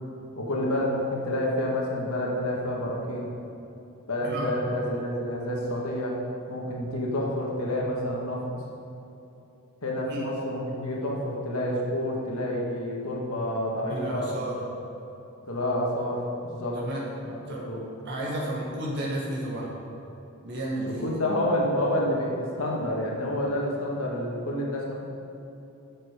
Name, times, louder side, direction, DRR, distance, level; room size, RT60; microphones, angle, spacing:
voice 1, 0.4-3.3 4.1-6.1 6.5-8.4 9.8-14.3 15.5-16.8 17.2-17.4 17.6-17.8 21.0-24.9, left 1 dB, 75° left, -3 dB, 1.8 m, -28 dB
voice 2, 13.9-14.6 16.7-17.0 17.5-17.6 18.1-19.7 20.4-21.1, right 1 dB, 50° right, -5 dB, 1.7 m, -31 dB
9.3 x 7.5 x 5.1 m, 2.9 s
head